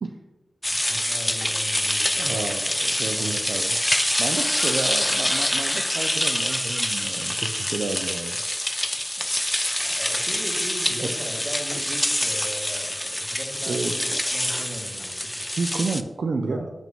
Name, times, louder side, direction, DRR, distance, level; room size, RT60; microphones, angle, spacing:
sound 1, 0.6-16.0, left 1 dB, 10° left, 0.4 m, -26 dB
voice 1, 0.7-2.5 3.2-3.5 9.8-15.4 16.5-16.7, equal, 25° right, -1 dB, 2.0 m, -38 dB
voice 2, 2.2-3.8 4.2-8.4 9.2-9.3 11.0-11.1 13.7-13.9 15.5-16.7, right 3 dB, 80° right, 4 dB, 0.4 m, -30 dB
sound 2, 2.3-2.4 2.7-2.8 3.0-3.1 3.3-3.4 4.0-8.3, left 1 dB, 25° left, 1.6 m, -42 dB
7.3 x 5.8 x 3.6 m, 1.1 s
cardioid pair, 60°, 0 cm